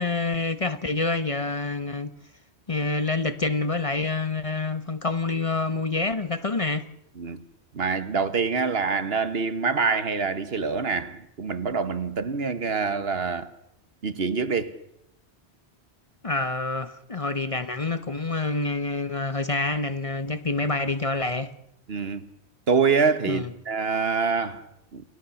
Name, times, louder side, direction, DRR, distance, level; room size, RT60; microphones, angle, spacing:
voice 1, 0.0-2.1 2.7-6.9 16.2-21.5 23.3-23.5, left 3 dB, 35° left, 1.0 m, -27 dB
voice 2, 7.2-7.5 7.7-13.5 14.0-14.8 21.9-22.3 22.7-25.0, right 5 dB, 65° right, 1.5 m, -26 dB
29.0 x 17.0 x 7.1 m
omnidirectional pair, 1.1 m